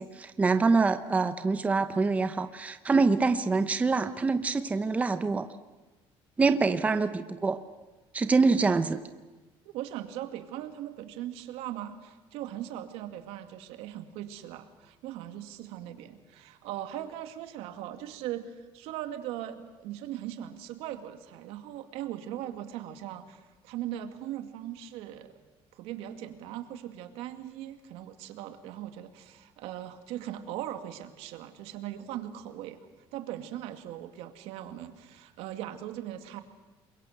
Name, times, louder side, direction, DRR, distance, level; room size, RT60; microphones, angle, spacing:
voice 1, 0.0-5.5 6.4-7.6 8.1-9.0, right 4 dB, 15° right, 10 dB, 0.8 m, -25 dB
voice 2, 9.6-25.3 25.7-32.8 33.1-36.4, right 12 dB, 85° right, 8 dB, 2.2 m, -39 dB
28.0 x 23.0 x 8.0 m, 1.2 s
cardioid pair, 170°, 10 cm